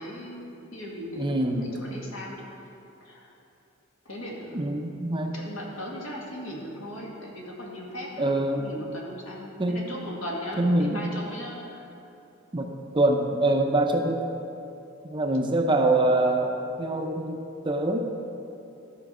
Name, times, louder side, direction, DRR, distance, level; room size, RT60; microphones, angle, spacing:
voice 1, 0.0-2.5 3.0-3.3 4.1-4.6 5.3-8.3 8.6-11.9, equal, 70° left, -3 dB, 2.0 m, -38 dB
voice 2, 1.2-1.7 4.5-5.4 8.2-8.7 9.6-9.9 10.6-11.0 12.5-12.7 12.9-14.2 15.0-18.0, right 2 dB, 25° right, 3 dB, 0.6 m, -24 dB
13.5 x 4.6 x 6.0 m, 2.8 s
head